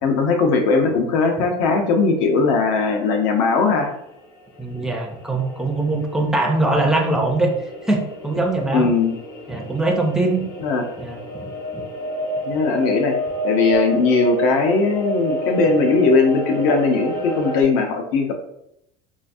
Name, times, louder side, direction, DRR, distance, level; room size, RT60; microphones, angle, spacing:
voice 1, 0.0-3.9 8.7-9.1 10.6-10.8 12.4-13.1 13.4-18.3, left 4 dB, 75° left, 4 dB, 0.7 m, -19 dB
sound 1, 3.2-3.3 3.4-3.5 3.9-17.6, equal, 55° left, 1.3 m, -30 dB
voice 2, 4.6-7.6 7.9-8.9 9.5-10.4 11.0-11.8, right 2 dB, 5° right, 2 dB, 0.4 m, -22 dB
3.9 x 2.3 x 2.5 m, 0.79 s
cardioid pair, 160°, 15 cm